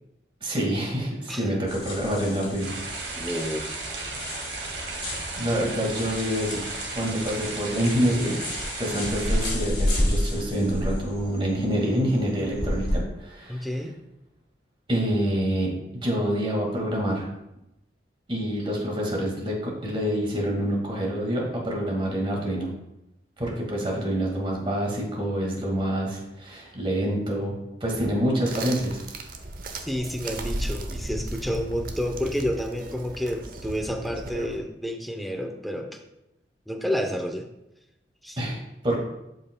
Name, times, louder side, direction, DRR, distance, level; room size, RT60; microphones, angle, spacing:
voice 1, 0.4-2.8 5.4-6.6 7.0-8.3 8.8-13.7 14.9-15.7 16.0-17.3 18.3-22.7 23.4-27.5 27.8-29.0 38.4-38.6 38.8-39.0, equal, 30° right, -2 dB, 1.8 m, -26 dB
sound 1, 1.7-13.0, left 1 dB, 35° left, 2.7 m, -31 dB
sound 2, 2.6-9.5, right 3 dB, 80° right, 1.8 m, -35 dB
voice 2, 3.2-3.8 13.5-13.9 29.9-35.9 36.7-37.5 38.2-38.4, equal, ahead, 4 dB, 0.6 m, -30 dB
sound 3, 28.5-34.6, right 2 dB, 55° right, 0.8 m, -36 dB
11.5 x 5.5 x 2.2 m, 0.90 s
head